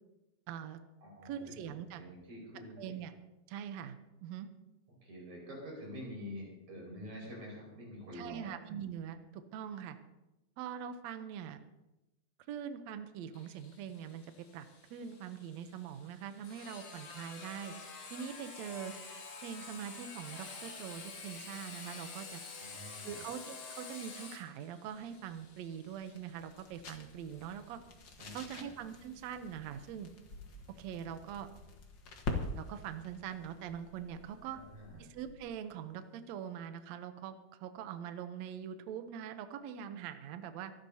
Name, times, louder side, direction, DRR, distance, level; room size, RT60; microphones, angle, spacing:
voice 1, 0.5-0.8 1.2-2.0 2.8-3.1 3.5-4.5 8.1-10.0 10.6-11.6 12.5-17.7 18.1-18.9 19.4-22.4 23.0-27.8 28.3-30.1 30.8-31.5 32.5-34.6 35.0-40.7, right 8 dB, 80° right, 9 dB, 1.6 m, -43 dB
voice 2, 1.0-1.6 2.0-2.8 5.0-8.5 22.6-23.2 28.2-28.6 34.5-35.0, equal, 55° right, -3 dB, 6.6 m, -47 dB
Sawing, 13.3-28.8, left 4 dB, 85° left, 5.2 m, -49 dB
sound 1, 24.9-35.5, left 3 dB, 50° left, 1.3 m, -46 dB
25.0 x 12.0 x 2.8 m, 0.98 s
omnidirectional pair, 4.2 m